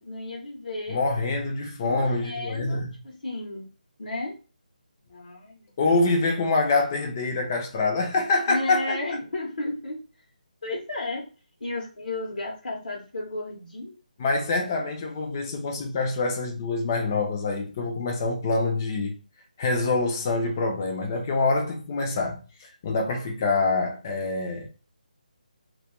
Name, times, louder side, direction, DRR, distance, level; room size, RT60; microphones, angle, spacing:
voice 1, 0.0-1.0 1.8-3.7 4.0-4.4 5.1-6.0 8.5-10.0 10.6-11.3 11.6-14.0, left 2 dB, 80° left, 0.7 m, -33 dB
voice 2, 0.9-2.9 5.8-9.0 14.2-19.1 19.6-22.4 22.8-24.7, left 3 dB, 20° left, 0.4 m, -25 dB
2.2 x 2.1 x 2.8 m
hypercardioid pair, 170°, 5 cm